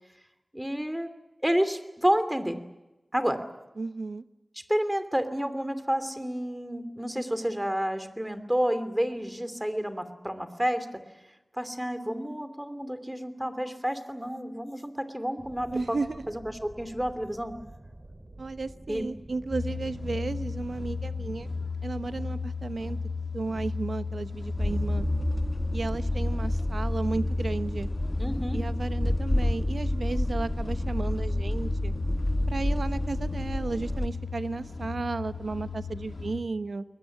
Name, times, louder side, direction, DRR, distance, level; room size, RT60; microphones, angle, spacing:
voice 1, 0.5-1.1 1.4-2.6 3.1-3.4 4.7-11.0 11.6-16.0 16.3-17.5 18.9-19.1 28.2-28.6, equal, 10° right, 10 dB, 2.8 m, -30 dB
voice 2, 3.8-4.2 15.7-16.2 18.4-21.5 21.8-23.0 23.3-25.1 25.7-27.9 28.5-31.9 32.5-36.8, right 3 dB, 85° right, 12 dB, 1.0 m, -33 dB
sound 1, 15.4-21.7, right 1 dB, 35° right, 2.9 m, -48 dB
sound 2, 19.5-36.4, left 3 dB, 85° left, 2.6 m, -34 dB
sound 3, 24.6-34.1, left 1 dB, 25° left, 1.4 m, -30 dB
21.5 x 20.5 x 9.9 m, 1.0 s
wide cardioid pair, 65°, 0 cm